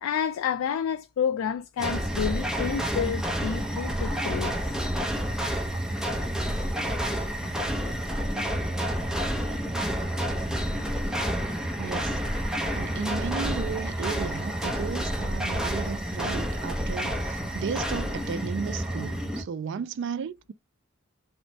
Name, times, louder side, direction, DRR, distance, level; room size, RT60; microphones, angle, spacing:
voice 1, 0.0-4.5 7.8-7.9, left 8 dB, 80° left, 0.3 m, -29 dB
sound 1, 1.8-19.4, equal, 5° right, 0.6 m, -29 dB
voice 2, 11.8-12.2 12.7-20.5, right 6 dB, 60° right, 0.3 m, -34 dB
3.0 x 2.1 x 2.6 m
head